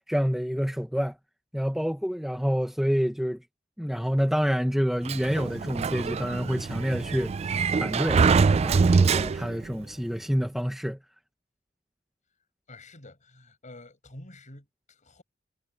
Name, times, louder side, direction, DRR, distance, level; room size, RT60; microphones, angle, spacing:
voice 1, 0.1-1.2 1.5-3.4 3.8-7.3 7.8-11.0, equal, ahead, 0.9 m, -28 dB
Sliding door, 5.1-9.7, right 5 dB, 35° right, 0.3 m, -24 dB
voice 2, 12.7-15.2, left 2 dB, 40° left, 6.2 m, -48 dB
head